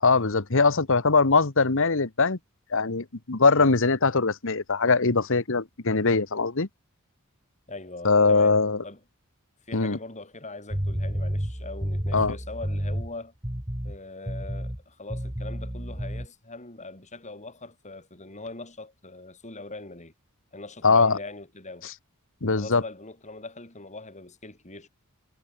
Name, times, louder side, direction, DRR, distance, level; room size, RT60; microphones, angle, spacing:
voice 1, 0.0-2.4 2.7-6.7 8.0-8.8 9.7-10.0 12.1-12.4 20.8-21.2 22.4-22.8, left 4 dB, 60° left, 1.4 m, -21 dB
voice 2, 7.7-8.6 8.8-9.0 9.7-13.3 13.8-20.1 20.5-21.9 22.5-24.9, left 2 dB, 30° left, 5.2 m, -41 dB
sound 1, 10.7-13.1 13.4-14.0 14.3-14.8 15.1-16.3, equal, 20° right, 2.3 m, -30 dB
head